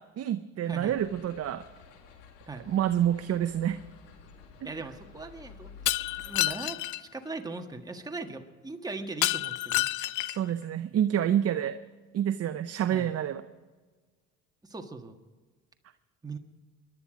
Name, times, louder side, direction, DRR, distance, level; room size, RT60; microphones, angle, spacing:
voice 1, 0.2-1.6 2.7-3.8 10.2-11.8 12.1-13.4, right 10 dB, 45° right, 11 dB, 0.7 m, -28 dB
sound 1, 0.8-6.5, left 5 dB, 85° left, 2.0 m, -51 dB
voice 2, 4.6-5.7 6.3-9.8 12.9-13.1 14.6-15.2 16.2-16.4, right 3 dB, 10° right, 4 dB, 1.6 m, -39 dB
Shatter, 5.9-7.0 9.2-10.5, left 16 dB, 55° left, 0.6 m, -29 dB
22.5 x 11.0 x 5.1 m, 1.4 s
hypercardioid pair, 70°, 36 cm